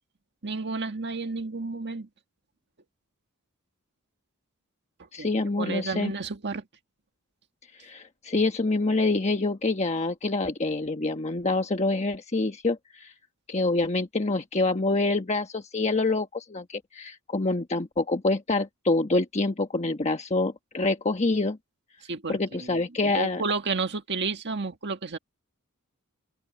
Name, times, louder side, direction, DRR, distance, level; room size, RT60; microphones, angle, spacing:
voice 1, 0.4-2.1 5.2-5.3 5.6-6.6 22.1-25.2, right 4 dB, 50° right, 1.7 m, -31 dB
voice 2, 5.1-6.1 7.7-13.1 13.5-21.6 22.3-23.4, left 2 dB, 30° left, 1.2 m, -26 dB
head